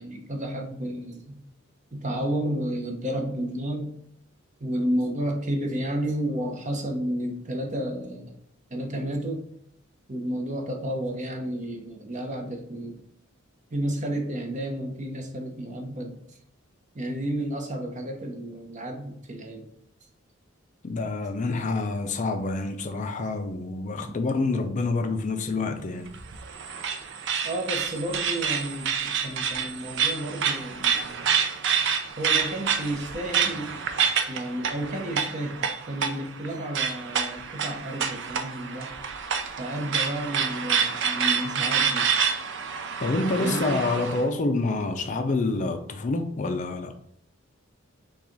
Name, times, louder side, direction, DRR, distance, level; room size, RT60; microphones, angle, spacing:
voice 1, 0.0-1.4 1.9-4.0 4.6-8.4 8.7-9.4 10.1-13.0 13.7-16.2 16.9-19.7 27.4-31.3 32.2-33.8 34.3-38.9 39.6-42.1 43.4-43.9, right 1 dB, 35° right, 0.9 m, -31 dB
voice 2, 20.8-26.1 43.0-46.9, left 3 dB, 40° left, 0.4 m, -27 dB
sound 1, 26.1-44.2, right 7 dB, 60° right, 0.5 m, -28 dB
5.7 x 2.4 x 3.9 m
head